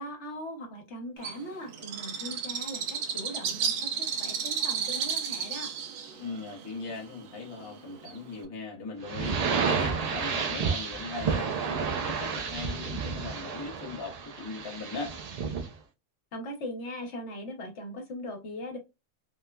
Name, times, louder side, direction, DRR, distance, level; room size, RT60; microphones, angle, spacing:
voice 1, 0.0-5.7 16.3-18.8, equal, 60° left, 1.1 m, -40 dB
Bird, 1.2-8.4, right 7 dB, 90° right, 1.0 m, -33 dB
voice 2, 6.1-15.2, left 4 dB, 25° left, 0.6 m, -39 dB
sound 1, 9.0-15.7, right 6 dB, 70° right, 0.3 m, -31 dB
3.1 x 2.1 x 2.2 m
omnidirectional pair, 1.4 m